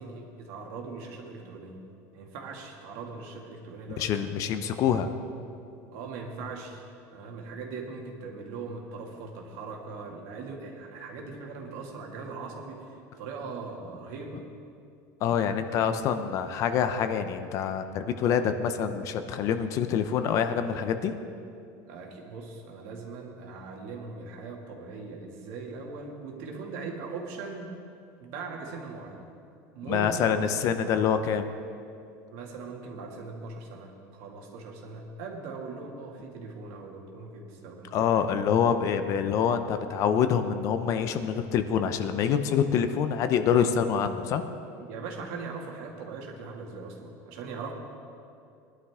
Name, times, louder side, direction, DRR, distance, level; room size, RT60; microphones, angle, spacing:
voice 1, 0.0-1.8 2.1-4.7 5.9-6.8 7.1-14.4 15.4-16.0 21.9-27.8 28.2-29.3 29.7-30.9 32.3-38.5 44.8-47.7, right 4 dB, 65° right, 0 dB, 2.3 m, -40 dB
voice 2, 4.0-5.1 15.2-21.1 29.9-31.5 37.9-44.4, left 8 dB, 40° left, 9 dB, 0.7 m, -26 dB
20.5 x 11.5 x 3.7 m, 2.5 s
cardioid pair, 160°, 8 cm